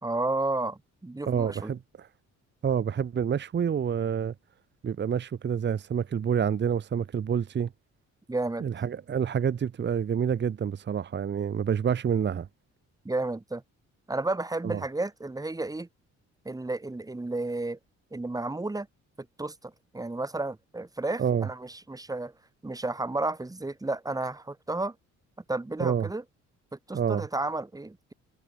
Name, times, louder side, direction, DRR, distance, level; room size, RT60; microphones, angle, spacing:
voice 1, 0.0-1.7 8.3-8.6 13.0-13.6 14.1-15.9 16.4-17.8 18.1-18.9 19.2-22.3 22.6-24.9 25.5-26.2 26.9-28.1, right 2 dB, 10° right, 1.6 m, -32 dB
voice 2, 1.3-2.1 2.6-4.3 4.8-7.7 8.6-12.5 14.6-14.8 21.2-21.5 25.8-26.1 26.9-27.3, right 7 dB, 35° right, 0.9 m, -28 dB
cardioid pair, 90°, 30 cm